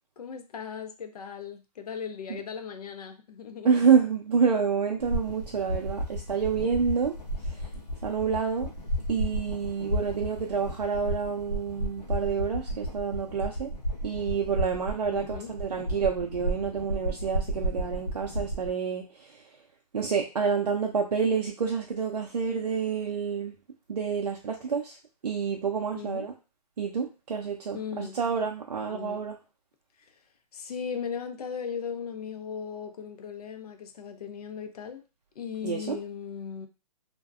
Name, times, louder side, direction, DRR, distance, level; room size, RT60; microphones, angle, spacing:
voice 1, 0.2-3.8 15.1-15.5 25.9-26.3 27.7-28.2 28.9-29.2 30.0-30.2 30.5-35.0 35.4-36.7, left 7 dB, 70° left, 7 dB, 0.5 m, -37 dB
voice 2, 3.6-7.2 7.5-7.7 8.0-8.7 9.1-13.7 14.0-19.4 19.9-23.5 23.9-25.0 25.2-26.3 26.8-29.4 35.6-36.0, right 6 dB, 80° right, 0 dB, 0.5 m, -28 dB
sound 1, 5.0-18.7, right 1 dB, 90° left, 0.9 m, -33 dB
2.5 x 2.1 x 2.3 m, 0.31 s
figure-of-eight pair, 135°, 20 cm